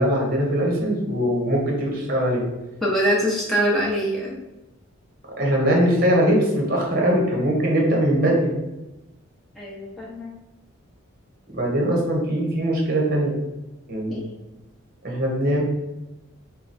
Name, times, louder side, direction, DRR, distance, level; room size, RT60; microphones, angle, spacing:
voice 1, 0.0-2.4 5.4-8.5 11.5-13.3 13.9-14.2 15.0-15.6, equal, 45° right, -1 dB, 1.0 m, -21 dB
voice 2, 2.8-4.4 9.5-10.3 14.1-14.3, equal, ahead, -6 dB, 1.0 m, -24 dB
4.7 x 2.3 x 4.1 m, 0.99 s
head